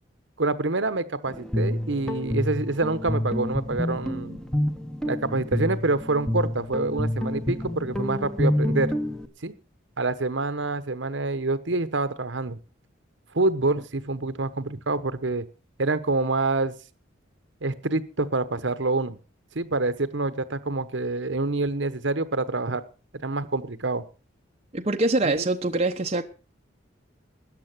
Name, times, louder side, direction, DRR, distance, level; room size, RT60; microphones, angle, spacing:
voice 1, 0.4-4.4 5.0-8.9 9.4-9.5 10.0-12.6 13.3-15.4 15.8-16.7 17.6-19.2 19.5-22.8 23.2-24.0 25.2-25.4, right 3 dB, 70° right, 1.1 m, -26 dB
Guitar, 1.3-9.3, left 1 dB, 5° left, 1.1 m, -28 dB
voice 2, 24.7-26.2, right 2 dB, 30° right, 0.9 m, -24 dB
13.5 x 9.8 x 6.0 m
head